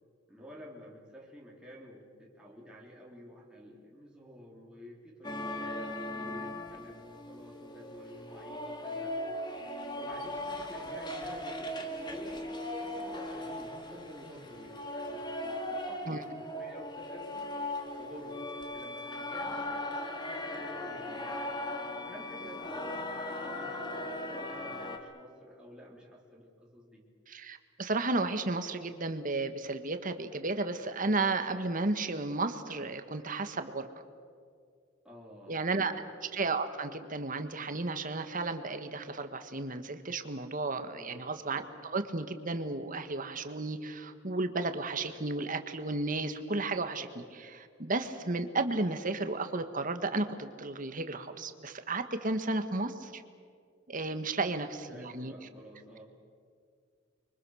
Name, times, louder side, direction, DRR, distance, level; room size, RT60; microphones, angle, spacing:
voice 1, 0.3-9.2 10.0-17.5 18.0-21.4 22.0-27.1 35.0-36.1 40.9-41.2 54.9-56.0, equal, 5° right, -4 dB, 3.6 m, -50 dB
sound 1, 5.2-25.0, left 1 dB, 25° left, 2.4 m, -38 dB
voice 2, 27.3-33.9 35.5-35.9 36.3-53.2 53.9-55.3, right 3 dB, 45° right, 9 dB, 1.6 m, -33 dB
29.5 x 24.5 x 6.5 m, 2.2 s
head